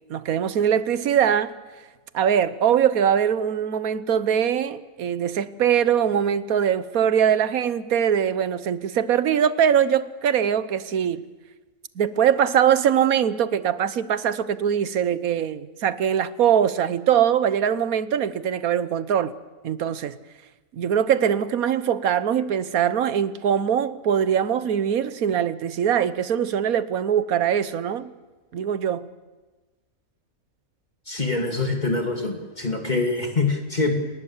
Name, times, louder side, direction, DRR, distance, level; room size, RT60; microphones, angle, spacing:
voice 1, 0.1-1.6 2.1-11.2 12.0-19.3 19.6-20.2 20.7-28.1 28.5-29.1, right 9 dB, 80° right, 1.4 m, -22 dB
voice 2, 31.1-33.9, left 3 dB, 30° left, 2.6 m, -25 dB
30.0 x 19.5 x 7.3 m
omnidirectional pair, 1.5 m